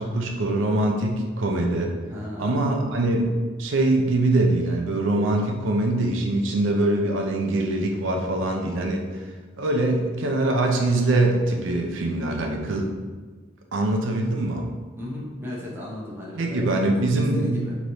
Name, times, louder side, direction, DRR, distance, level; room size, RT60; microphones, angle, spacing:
voice 1, 0.0-1.9 2.4-3.3 3.6-9.3 9.6-12.9 13.7-14.6 16.4-17.6, right 2 dB, 80° right, 2 dB, 0.5 m, -23 dB
voice 2, 2.1-2.7 15.0-16.7 17.0-17.8, left 1 dB, 10° right, -5 dB, 0.7 m, -35 dB
4.7 x 3.0 x 2.7 m, 1.3 s
head